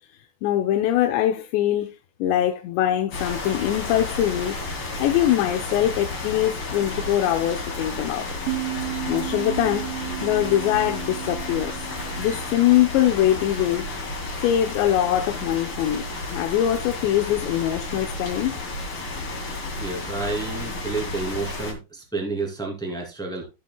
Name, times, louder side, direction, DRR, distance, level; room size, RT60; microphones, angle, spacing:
voice 1, 0.4-1.9 2.2-4.6 5.0-8.4 9.1-9.8 10.2-11.8 12.2-14.1 14.4-16.0 16.3-18.6, left 12 dB, 80° left, 2.9 m, -22 dB
sound 1, 3.1-21.7, left 2 dB, 40° left, 1.7 m, -32 dB
sound 2, 8.5-13.8, right 29 dB, 80° right, 2.8 m, -34 dB
voice 2, 19.7-23.5, right 3 dB, 5° left, 0.7 m, -30 dB
16.0 x 6.9 x 2.2 m
omnidirectional pair, 5.4 m